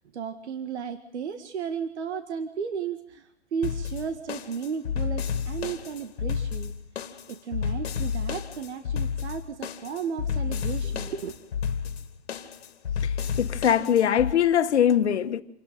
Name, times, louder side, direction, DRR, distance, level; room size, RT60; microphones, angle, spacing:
voice 1, 0.1-6.7 7.3-11.3, right 7 dB, 80° right, 1.9 m, -34 dB
sound 1, 3.6-14.3, left 7 dB, 65° left, 2.6 m, -31 dB
voice 2, 13.0-15.4, left 9 dB, 85° left, 1.6 m, -22 dB
28.5 x 11.5 x 9.2 m
hypercardioid pair, 175°, 33 cm